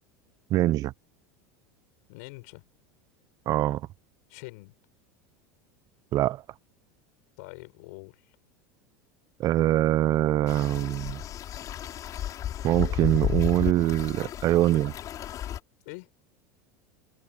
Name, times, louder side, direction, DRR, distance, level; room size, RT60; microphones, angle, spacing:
voice 1, 0.5-0.9 3.5-3.8 6.1-6.4 9.4-11.2 12.6-14.9, right 14 dB, 45° right, 0.8 m, -23 dB
voice 2, 2.1-2.6 4.3-4.8 7.4-8.4 15.9-16.1, left 27 dB, 70° left, 6.7 m, -44 dB
sound 1, 10.5-15.6, left 11 dB, 40° left, 4.9 m, -33 dB
supercardioid pair, 110°, 9 cm